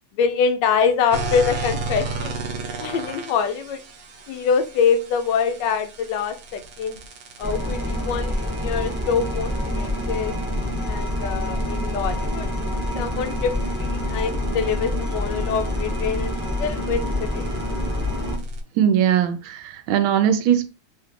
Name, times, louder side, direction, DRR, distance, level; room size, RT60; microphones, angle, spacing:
voice 1, 0.2-2.3 2.8-3.8 4.3-7.0 7.4-10.3 10.8-12.5 13.0-13.5 13.8-17.5, left 6 dB, 75° left, 1.1 m, -24 dB
sound 1, 1.1-18.6, right 1 dB, 65° right, 0.9 m, -35 dB
sound 2, 7.4-18.4, left 1 dB, 10° right, 0.6 m, -27 dB
voice 2, 18.8-20.7, right 9 dB, 85° right, 1.4 m, -20 dB
3.3 x 2.3 x 3.5 m
omnidirectional pair, 2.2 m